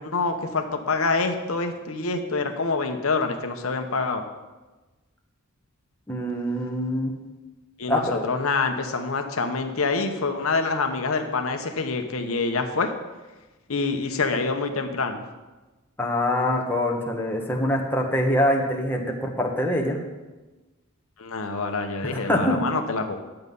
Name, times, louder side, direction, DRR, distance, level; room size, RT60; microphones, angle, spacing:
voice 1, 0.0-4.2 7.8-12.9 13.7-15.2 21.2-23.2, left 4 dB, 70° left, 5 dB, 0.9 m, -26 dB
voice 2, 6.1-7.1 7.9-8.2 16.0-20.0 22.0-22.6, left 1 dB, 10° left, 0 dB, 1.2 m, -24 dB
10.5 x 7.9 x 5.4 m, 1.2 s
head